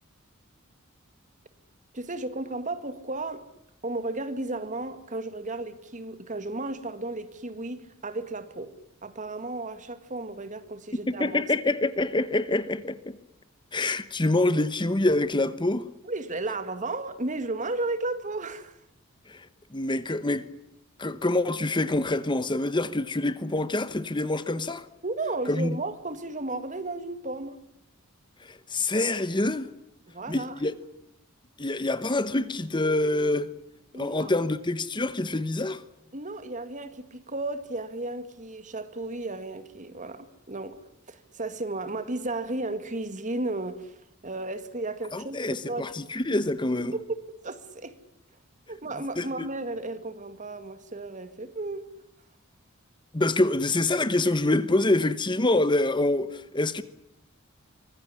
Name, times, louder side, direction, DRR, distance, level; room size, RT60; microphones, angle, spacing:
voice 1, 1.9-3.5 3.8-8.8 9.0-11.4 16.0-18.8 25.0-27.6 30.1-30.6 33.9-34.3 36.1-44.0 44.2-45.9 46.8-48.0 48.7-51.9, right 2 dB, 35° right, 2.0 m, -34 dB
voice 2, 11.1-13.2 13.7-15.9 19.3-19.5 19.7-20.5 21.0-24.9 25.5-25.8 28.4-29.7 30.3-30.7 31.6-33.5 33.9-35.8 45.1-46.9 49.2-49.5 53.1-56.8, left 2 dB, 20° left, 1.0 m, -26 dB
25.0 x 20.0 x 9.8 m
head